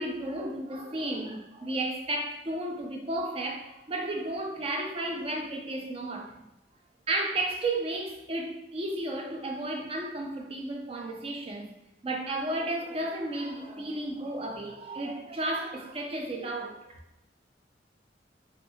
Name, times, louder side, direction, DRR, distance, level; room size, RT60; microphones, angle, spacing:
voice 1, 0.0-6.3 7.1-11.7 12.0-16.8, right 1 dB, 30° right, 1 dB, 0.5 m, -33 dB
3.3 x 2.7 x 2.8 m, 0.95 s
head